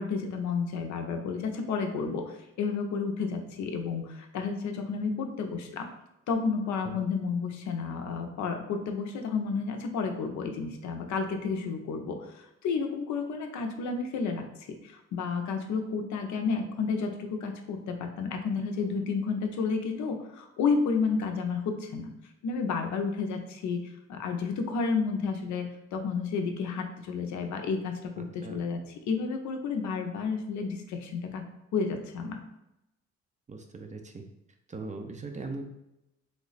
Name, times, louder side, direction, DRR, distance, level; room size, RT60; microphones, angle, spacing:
voice 1, 0.0-5.9 6.3-14.5 14.8-22.1 22.4-28.8 29.1-31.4 31.7-32.4, left 5 dB, 70° left, 5 dB, 0.6 m, -31 dB
voice 2, 28.2-28.6 33.5-34.2 34.7-35.6, right 3 dB, 25° right, 4 dB, 0.4 m, -40 dB
3.2 x 2.1 x 3.9 m, 0.88 s
cardioid pair, 90°, 30 cm